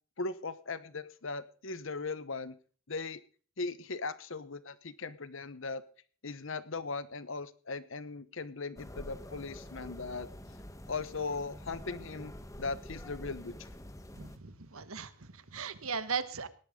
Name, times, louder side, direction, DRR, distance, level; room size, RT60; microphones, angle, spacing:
voice 1, 0.2-2.6 2.9-3.2 3.6-5.8 6.2-10.3 10.9-12.3 12.6-13.5, left 4 dB, 65° left, 15 dB, 1.0 m, -38 dB
sound 1, 8.8-14.4, left 1 dB, 15° left, 1.3 m, -47 dB
voice 2, 14.1-16.5, right 5 dB, 80° right, 13 dB, 1.4 m, -38 dB
18.0 x 12.0 x 3.8 m, 0.41 s
head